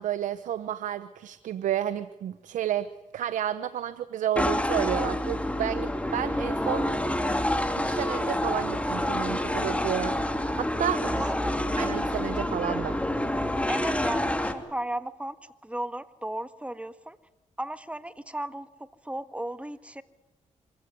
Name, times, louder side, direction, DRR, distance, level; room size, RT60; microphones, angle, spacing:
voice 1, 0.0-2.9 3.1-7.0 7.7-10.2 10.5-11.3 11.8-13.0, right 10 dB, 85° right, 13 dB, 0.9 m, -31 dB
sound 1, 4.4-14.5, left 1 dB, 10° left, 2.8 m, -28 dB
voice 2, 11.1-11.6 13.7-17.2 17.6-18.7 19.0-20.0, right 1 dB, 10° right, 12 dB, 1.6 m, -35 dB
26.0 x 16.0 x 9.6 m, 1.1 s
cardioid pair, 65°, 13 cm